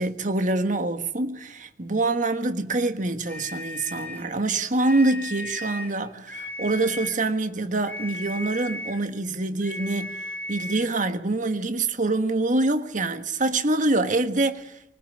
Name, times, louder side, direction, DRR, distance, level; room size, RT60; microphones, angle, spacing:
voice 1, 0.0-14.7, right 2 dB, 45° right, 1.5 m, -25 dB
sound 1, 3.2-4.3 4.7-6.0 6.3-7.2 7.8-9.1 9.6-11.0, left 1 dB, 10° left, 4.7 m, -36 dB
24.5 x 19.5 x 8.6 m
head